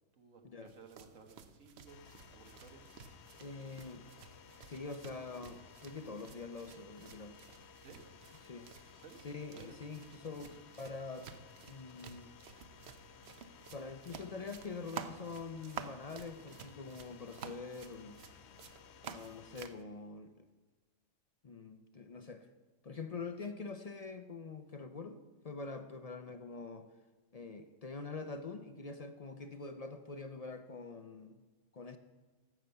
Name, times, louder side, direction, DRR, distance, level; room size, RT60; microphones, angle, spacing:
voice 1, 0.1-2.1 2.3-2.8 7.8-8.0 8.9-9.2 9.5-9.8, right 5 dB, 80° right, 4 dB, 1.8 m, -56 dB
sound 1, 0.7-19.8, right 7 dB, 60° right, 0.9 m, -52 dB
sound 2, 1.9-19.6, left 6 dB, 65° left, 0.9 m, -58 dB
voice 2, 3.4-4.0 4.7-7.4 8.4-8.7 9.2-11.3 11.7-12.3 13.7-18.2 19.1-20.5 21.4-22.5 22.8-26.9 27.3-31.4 31.7-32.0, left 4 dB, 45° left, 9 dB, 0.5 m, -45 dB
12.0 x 7.0 x 7.7 m, 1.3 s
omnidirectional pair, 1.3 m